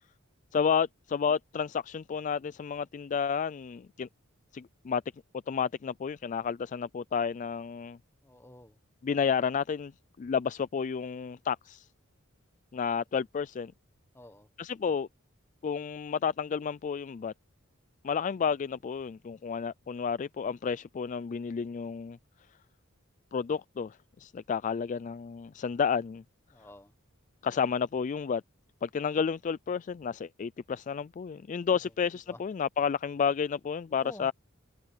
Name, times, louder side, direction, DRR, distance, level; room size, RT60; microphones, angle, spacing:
voice 1, 0.5-4.1 4.5-5.0 5.5-8.0 9.0-9.9 10.2-11.9 12.7-13.7 14.6-15.1 15.6-17.3 18.0-22.2 23.3-26.2 27.4-28.4 28.8-34.3, left 6 dB, 40° left, 0.3 m, -31 dB
voice 2, 8.2-8.8 14.1-14.5 26.5-26.9 32.3-32.4 33.9-34.3, left 1 dB, 10° left, 1.3 m, -49 dB
head